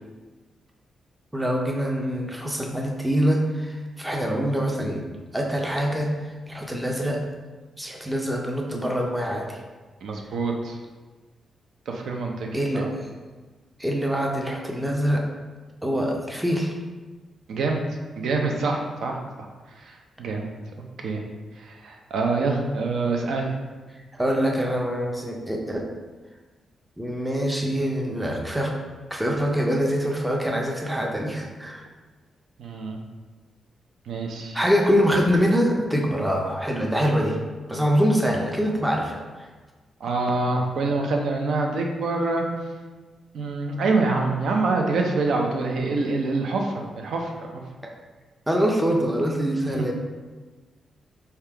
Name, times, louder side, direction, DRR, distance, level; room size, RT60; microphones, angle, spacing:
voice 1, 1.3-5.0 5.3-6.1 6.5-7.2 7.8-9.6 12.5-12.9 13.8-15.2 15.8-16.7 24.1-25.8 27.0-28.7 29.1-31.8 34.5-37.4 37.7-39.5 48.5-49.9, equal, 5° right, 0 dB, 0.4 m, -24 dB
voice 2, 10.0-10.8 11.9-12.5 12.7-12.9 17.5-17.8 18.2-19.5 19.8-20.5 21.0-21.2 21.6-23.5 32.6-33.0 34.1-34.6 40.0-42.4 43.3-47.6 49.8-49.9, right 3 dB, 75° right, 1 dB, 0.6 m, -26 dB
3.6 x 2.8 x 4.5 m, 1.3 s
wide cardioid pair, 165°, 0 cm